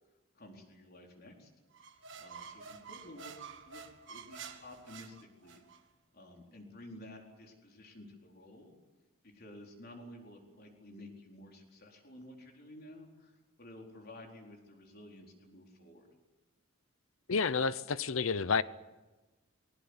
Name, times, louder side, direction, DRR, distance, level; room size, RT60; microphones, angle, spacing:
voice 1, 0.3-1.5 2.2-3.3 3.6-3.8 4.1-5.6 6.1-8.7 9.2-16.1, left 1 dB, 45° left, 4.3 m, -52 dB
sound 1, 1.7-5.8, right 6 dB, 60° right, 1.6 m, -49 dB
voice 2, 17.3-18.6, left 5 dB, 70° left, 0.8 m, -30 dB
20.5 x 18.0 x 9.8 m
head